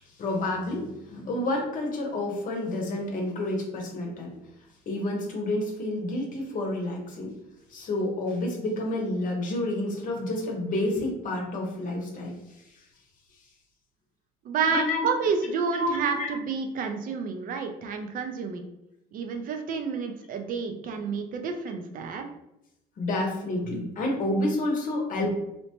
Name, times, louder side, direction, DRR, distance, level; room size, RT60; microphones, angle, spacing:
voice 1, 0.2-4.3 4.9-7.3 7.7-12.4 14.7-15.1 15.7-16.3 23.0-25.4, left 1 dB, 50° left, 1 dB, 0.8 m, -29 dB
voice 2, 14.4-18.6 19.1-22.3, right 5 dB, 55° right, 5 dB, 0.5 m, -29 dB
2.8 x 2.1 x 2.9 m, 0.87 s
cardioid pair, 110°, 17 cm